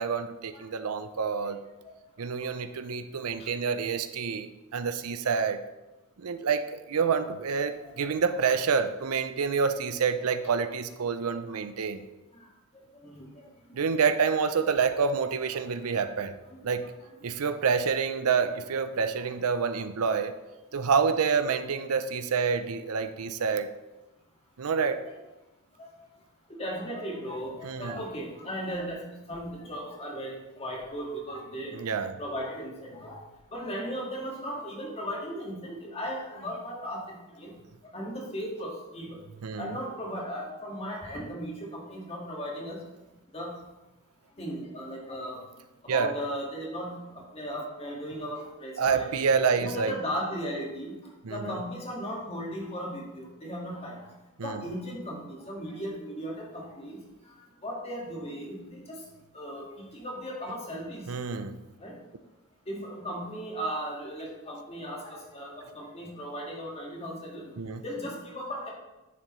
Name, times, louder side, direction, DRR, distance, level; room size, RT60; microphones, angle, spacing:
voice 1, 0.0-1.6 2.2-5.6 6.2-12.0 13.7-16.4 16.6-16.9 17.2-20.3 20.7-23.7 24.6-25.0 27.6-28.0 31.7-32.1 39.4-39.7 45.9-46.1 48.8-49.9 51.2-51.6 54.4-54.6 61.1-61.6 67.6-67.8, right 5 dB, 80° right, 10 dB, 0.6 m, -28 dB
voice 2, 18.9-19.3 25.8-25.9 26.5-29.0 29.3-31.7 32.2-33.2 33.5-37.0 37.4-37.5 37.9-39.2 39.6-42.8 43.3-43.5 44.4-45.4 45.9-47.0 47.3-49.2 49.6-50.9 51.3-54.1 54.4-57.0 57.6-59.0 59.3-61.0 61.8-61.9 62.7-67.4 67.8-68.7, equal, 25° left, -2 dB, 1.8 m, -36 dB
10.0 x 6.7 x 3.1 m, 1.0 s
head